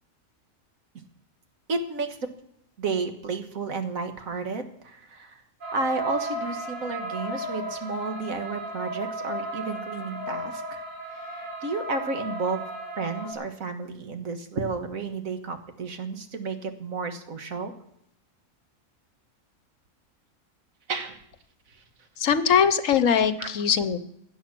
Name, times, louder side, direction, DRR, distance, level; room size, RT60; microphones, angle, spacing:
voice 1, 1.7-2.3 2.8-5.4 5.7-10.8 11.1-12.6 13.0-17.7 20.9-21.2 21.7-21.8 23.4-23.5, right 4 dB, 70° right, 6 dB, 1.8 m, -32 dB
sound 1, 5.6-13.3, right 1 dB, 55° right, 3.9 m, -35 dB
voice 2, 22.2-24.0, left 7 dB, 65° left, 12 dB, 1.2 m, -21 dB
17.0 x 10.0 x 6.1 m, 0.76 s
omnidirectional pair, 1.5 m